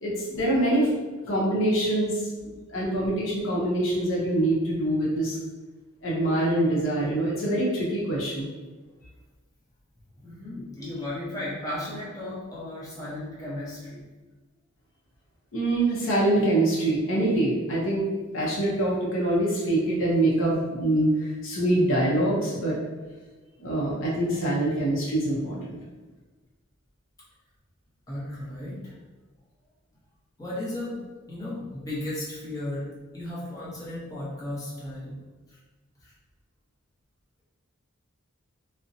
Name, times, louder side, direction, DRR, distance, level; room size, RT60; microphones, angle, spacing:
voice 1, 0.0-5.4 6.0-8.5 15.5-22.8 23.6-25.8, right 1 dB, 65° left, -5 dB, 0.6 m, -25 dB
voice 2, 10.2-14.0 28.1-28.9 30.4-31.0 31.3-32.9 33.1-35.2 35.5-35.6 36.0-36.1, left 1 dB, 15° left, -9 dB, 0.7 m, -35 dB
2.6 x 2.1 x 2.6 m, 1.3 s
head